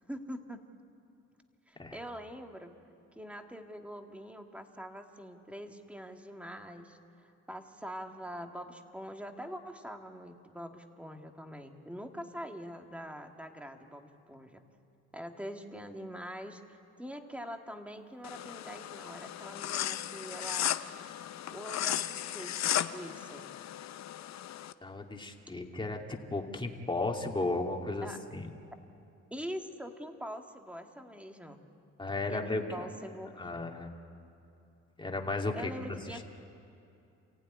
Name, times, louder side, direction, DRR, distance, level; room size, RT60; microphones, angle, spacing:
voice 1, 0.1-0.6 1.7-2.8 3.2-14.6 15.1-20.8 21.5-23.4 28.0-28.2 29.3-31.6 32.3-33.5 35.5-36.2, equal, 5° right, 4 dB, 2.1 m, -44 dB
sound 1, 18.2-24.7, left 11 dB, 65° left, 0.8 m, -35 dB
voice 2, 24.8-28.5 32.0-32.9 33.4-33.9 35.0-35.7 36.1-36.2, left 2 dB, 15° left, 2 dB, 2.5 m, -34 dB
28.5 x 15.5 x 9.8 m, 2.7 s
cardioid pair, 90°, 30 cm